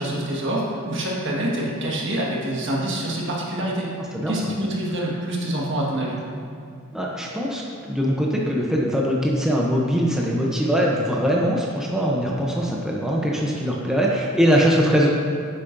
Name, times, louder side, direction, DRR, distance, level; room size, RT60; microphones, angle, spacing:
voice 1, 0.0-3.9 4.3-6.2, right 1 dB, 60° right, -3 dB, 1.6 m, -26 dB
voice 2, 4.1-4.5 6.9-7.6 7.9-15.1, equal, 5° right, -3 dB, 0.7 m, -22 dB
10.0 x 7.5 x 2.6 m, 2.4 s
head